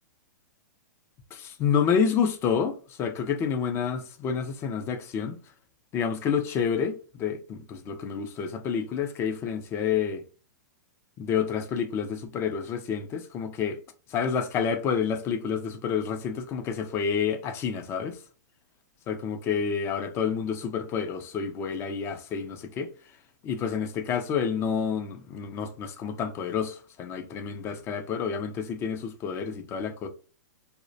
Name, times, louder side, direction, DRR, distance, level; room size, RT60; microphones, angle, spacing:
voice 1, 1.3-5.4 5.9-10.2 11.2-13.8 14.1-18.2 19.1-22.9 23.4-30.1, left 7 dB, 25° left, 0.4 m, -29 dB
2.3 x 2.1 x 2.6 m
hypercardioid pair, 130°, 10 cm